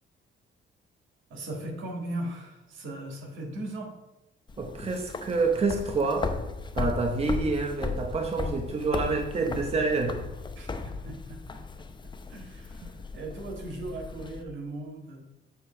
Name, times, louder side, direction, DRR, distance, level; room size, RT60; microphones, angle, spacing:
voice 1, 1.3-3.9 10.6-11.6 12.0-15.2, right 1 dB, 75° right, 1 dB, 1.8 m, -38 dB
sound 1, 4.5-14.4, left 4 dB, 25° left, 0.6 m, -36 dB
voice 2, 4.6-6.3 6.7-10.3, right 3 dB, 30° right, 2 dB, 0.9 m, -27 dB
8.0 x 3.1 x 5.6 m, 0.95 s
cardioid pair, 90°, 20 cm